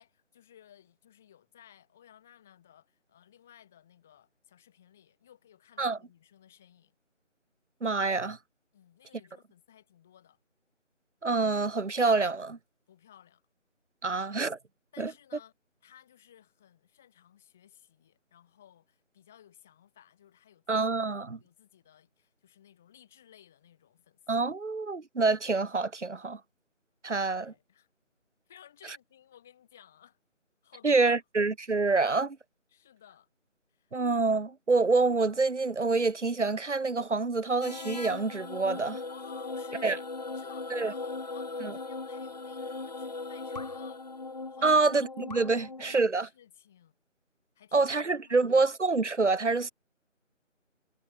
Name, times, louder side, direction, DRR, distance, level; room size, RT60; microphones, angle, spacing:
voice 1, 0.0-6.9 8.7-10.4 12.9-13.4 14.9-15.5 15.8-20.9 21.4-24.3 27.2-27.9 28.5-30.2 30.6-31.2 32.7-33.3 33.7-33.9 39.1-44.1 44.5-44.7 45.5-46.9 47.5-48.6, left 10 dB, ahead, 1.3 m, -57 dB
voice 2, 7.8-8.4 11.2-12.6 14.0-14.6 15.0-15.1 20.7-21.4 24.3-26.4 27.0-27.5 30.8-32.4 33.9-39.0 39.8-40.0 40.7-40.9 41.6-41.7 44.6-46.3 47.7-49.7, right 3 dB, 65° right, 1.6 m, -26 dB
sound 1, 37.6-46.0, left 3 dB, 30° left, 1.8 m, -39 dB
figure-of-eight pair, 170°, 38 cm